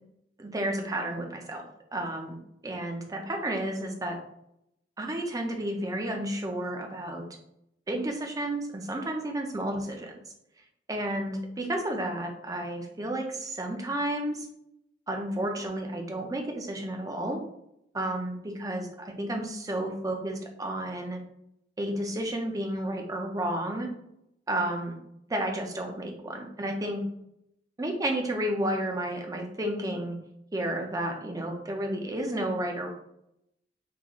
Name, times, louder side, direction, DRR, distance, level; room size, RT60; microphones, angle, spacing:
voice 1, 0.4-1.6 1.9-2.4 2.6-4.2 5.0-7.3 7.9-10.2 10.9-14.5 15.1-17.4 17.9-21.2 21.8-23.9 24.5-24.9 25.3-27.0 27.8-30.2 30.5-32.9, right 1 dB, 20° right, 2 dB, 0.5 m, -31 dB
3.8 x 2.4 x 3.0 m, 0.78 s
head